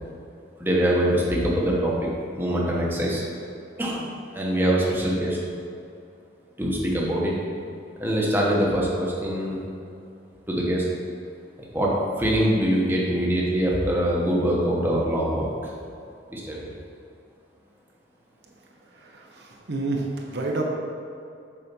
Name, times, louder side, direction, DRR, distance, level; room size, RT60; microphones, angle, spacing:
voice 1, 0.6-3.2 3.8-4.1 4.3-5.4 6.6-7.4 8.0-9.6 10.5-10.9 11.6-15.7 16.3-16.7, equal, 10° right, -4 dB, 1.1 m, -23 dB
voice 2, 19.0-20.6, right 2 dB, 60° right, 0 dB, 0.9 m, -29 dB
7.0 x 4.9 x 5.4 m, 2.5 s
head